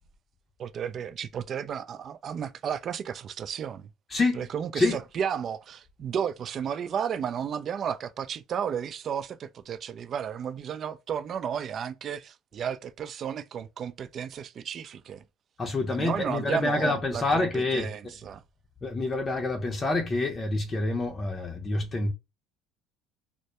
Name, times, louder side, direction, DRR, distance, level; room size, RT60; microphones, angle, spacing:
voice 1, 0.6-3.9 4.3-15.2 15.9-18.4, right 8 dB, 50° right, 0.4 m, -33 dB
voice 2, 4.1-4.5 4.7-5.0 15.6-17.9 18.8-22.1, left 2 dB, 30° left, 0.6 m, -27 dB
2.1 x 2.1 x 2.9 m
supercardioid pair, 80°, 0 cm